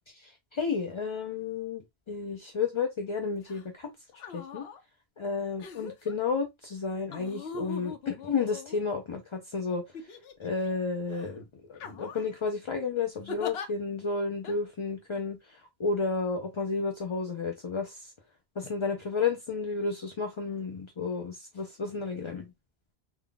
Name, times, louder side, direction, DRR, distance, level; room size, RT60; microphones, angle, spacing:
voice 1, 0.1-3.9 4.3-4.6 5.2-9.8 10.4-11.4 11.7-18.1 18.6-22.5, left 4 dB, 40° left, 0.4 m, -32 dB
sound 1, 3.4-3.6 4.1-4.8 5.6-6.1 7.1-9.2 9.9-10.7 11.1-11.3 11.8-12.4 13.3-13.7 14.4-14.6, left 5 dB, 75° left, 0.9 m, -42 dB
3.5 x 2.2 x 3.8 m
omnidirectional pair, 1.1 m